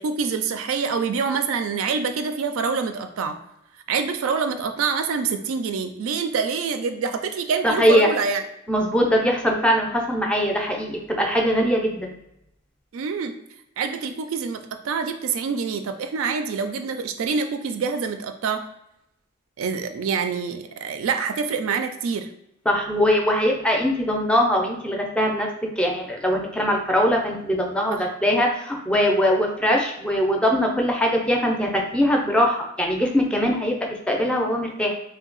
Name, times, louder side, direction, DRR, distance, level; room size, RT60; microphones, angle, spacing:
voice 1, 0.0-3.4 3.9-8.4 12.9-13.4 13.8-18.7 19.6-22.3 27.9-28.1, right 5 dB, 75° right, 7 dB, 0.3 m, -26 dB
voice 2, 7.6-8.1 8.7-12.1 22.7-25.5 25.8-35.0, equal, 5° left, 0 dB, 0.4 m, -21 dB
2.7 x 2.2 x 3.9 m, 0.82 s
head